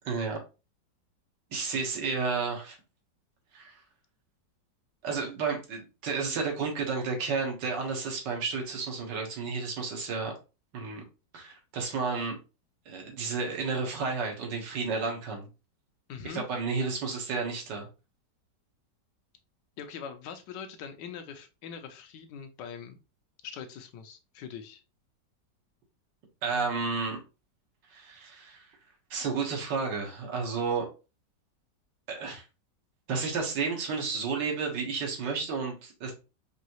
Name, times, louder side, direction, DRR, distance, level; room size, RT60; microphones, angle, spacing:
voice 1, 0.1-0.4 1.5-2.8 3.5-3.8 5.0-10.3 10.7-11.1 11.3-12.4 12.9-15.5 16.2-17.9 26.4-27.2 27.9-28.7 29.1-30.9 32.1-32.4 33.1-36.1, right 4 dB, 80° right, 1 dB, 1.8 m, -32 dB
voice 2, 16.1-16.4 19.8-23.0 23.4-24.8, left 7 dB, 85° left, 8 dB, 1.3 m, -42 dB
5.0 x 2.7 x 2.9 m, 0.30 s
omnidirectional pair, 1.9 m